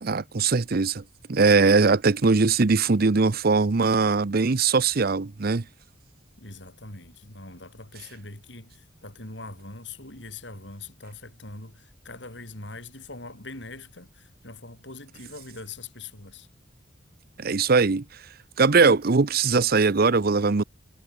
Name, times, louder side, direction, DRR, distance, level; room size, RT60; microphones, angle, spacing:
voice 1, 0.0-1.0 1.3-5.6 17.4-18.0 18.6-20.6, right 4 dB, 50° right, 0.7 m, -21 dB
voice 2, 6.4-16.5, left 3 dB, 65° left, 7.1 m, -42 dB
head